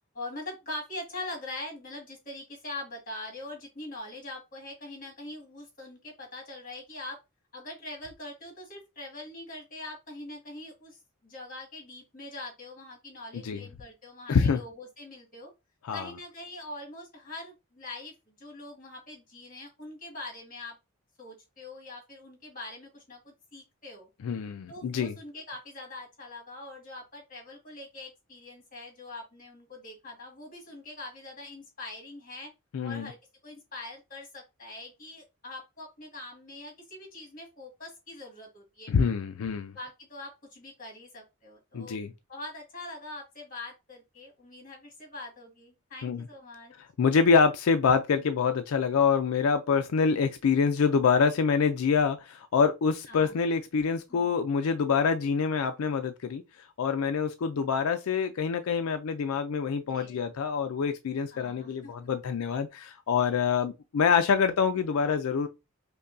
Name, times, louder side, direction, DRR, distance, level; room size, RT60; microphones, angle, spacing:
voice 1, 0.1-7.2 7.5-15.5 15.9-20.8 21.2-24.1 24.7-32.5 32.8-33.2 33.4-39.1 39.7-42.0 42.3-46.7 53.1-53.4 54.1-54.3 59.9-60.2 61.3-62.1, left 2 dB, 40° left, 1.8 m, -43 dB
voice 2, 14.3-14.6 15.8-16.1 24.2-25.1 32.7-33.1 38.9-39.7 41.7-42.1 46.0-46.2 47.0-56.4 56.8-65.5, left 5 dB, 90° left, 0.4 m, -26 dB
5.3 x 2.2 x 2.5 m
head